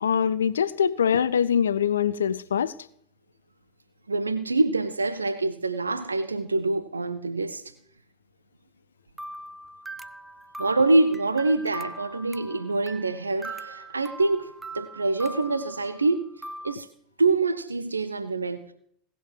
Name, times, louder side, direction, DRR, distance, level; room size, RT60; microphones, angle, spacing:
voice 1, 0.0-2.7, left 8 dB, 75° left, 0.5 m, -23 dB
voice 2, 4.1-7.6 10.6-16.2 16.6-16.9 17.2-18.7, right 3 dB, 85° right, 0.8 m, -25 dB
sound 1, 9.2-16.8, right 1 dB, 10° right, 0.8 m, -41 dB
18.5 x 7.0 x 7.4 m
figure-of-eight pair, 85°, 0 cm